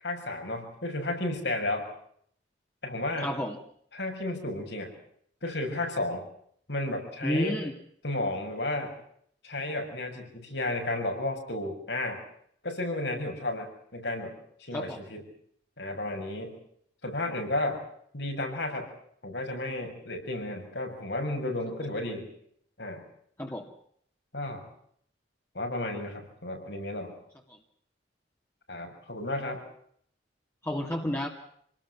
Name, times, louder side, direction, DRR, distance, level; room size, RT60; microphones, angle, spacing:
voice 1, 0.0-1.9 2.8-3.3 3.9-4.9 5.4-6.2 6.7-7.6 8.0-9.0 9.4-12.2 12.6-15.2 15.8-16.6 17.0-17.8 18.1-18.9 19.2-22.3 22.8-23.0 24.3-24.6 25.5-27.1 28.7-29.6, left 2 dB, 75° left, 4 dB, 7.0 m, -33 dB
voice 2, 3.2-3.6 7.2-7.7 14.7-15.0 23.4-23.7 27.5-27.6 30.6-31.3, equal, 15° left, 0 dB, 2.2 m, -31 dB
28.0 x 19.5 x 7.3 m, 0.66 s
head